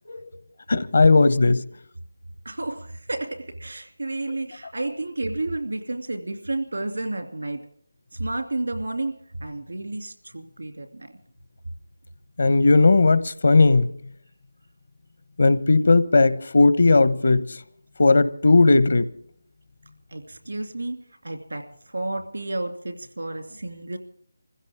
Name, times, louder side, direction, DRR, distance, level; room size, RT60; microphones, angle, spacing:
voice 1, 0.7-1.6 12.4-13.9 15.4-17.6 18.0-19.1, left 3 dB, 65° left, 1.0 m, -17 dB
voice 2, 2.4-7.6 8.1-9.1 9.4-11.1 20.1-24.0, right 2 dB, 90° right, 2.5 m, -31 dB
25.5 x 16.0 x 3.6 m
figure-of-eight pair, 165°, 0 cm